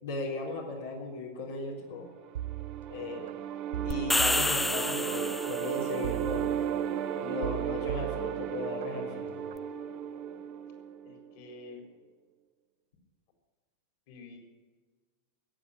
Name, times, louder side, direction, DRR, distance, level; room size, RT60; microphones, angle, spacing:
voice 1, 0.0-2.1 2.9-3.3 3.8-6.6 7.2-9.3, left 3 dB, 75° left, -4 dB, 3.6 m, -37 dB
sound 1, 2.2-11.3, right 9 dB, 50° right, 1.5 m, -35 dB
sound 2, 2.3-3.3 3.7-5.2 6.0-7.0 7.4-8.9 9.3-9.7, right 14 dB, 70° right, 0.4 m, -39 dB
sound 3, 3.9-5.8, left 2 dB, 10° left, 0.6 m, -29 dB
voice 2, 11.0-11.8 14.1-14.4, left 3 dB, 55° left, 4 dB, 4.4 m, -48 dB
15.0 x 8.8 x 9.8 m, 1.4 s
hypercardioid pair, 100°, 0 cm